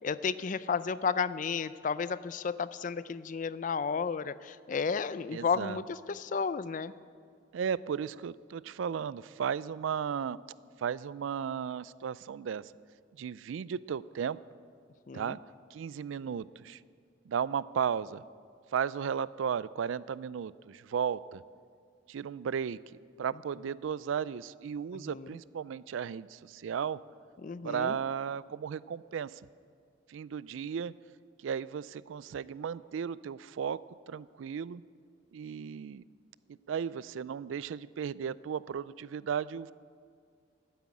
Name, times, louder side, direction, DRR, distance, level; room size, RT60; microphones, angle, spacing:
voice 1, 0.0-6.9 15.1-15.4 24.9-25.3 27.4-28.0, left 5 dB, 45° left, 16 dB, 0.4 m, -33 dB
voice 2, 5.3-5.8 7.5-10.4 10.8-12.7 13.2-14.4 15.1-15.4 15.7-16.8 17.3-18.2 18.7-21.4 22.1-22.8 23.2-27.0 27.6-29.4 30.1-30.9 31.4-33.8 34.1-34.8 35.3-36.0 36.5-39.7, right 7 dB, 85° right, 20 dB, 0.3 m, -35 dB
13.0 x 9.2 x 8.4 m, 2.1 s
head